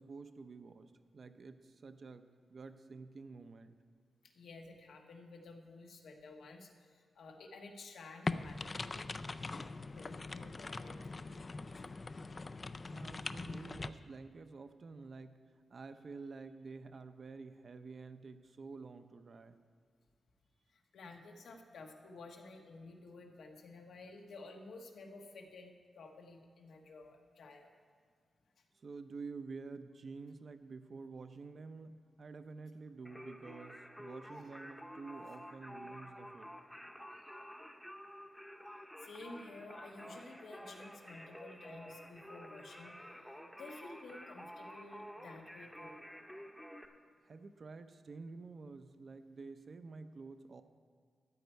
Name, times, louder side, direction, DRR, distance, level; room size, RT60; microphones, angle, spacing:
voice 1, 0.0-2.2 2.5-3.8 12.9-15.4 15.7-19.6 28.7-36.5 47.2-50.6, right 4 dB, 50° right, 9 dB, 0.6 m, -49 dB
voice 2, 4.2-9.1 9.5-9.7 9.9-11.0 11.3-11.7 20.7-27.7 34.3-34.5 38.7-46.0, left 3 dB, 90° left, 2 dB, 1.4 m, -53 dB
sound 1, 8.3-13.9, left 3 dB, 35° left, 0.4 m, -42 dB
Singing, 33.0-46.8, equal, 5° left, 0.8 m, -51 dB
13.5 x 9.1 x 4.5 m, 2.1 s
wide cardioid pair, 120°, 0 cm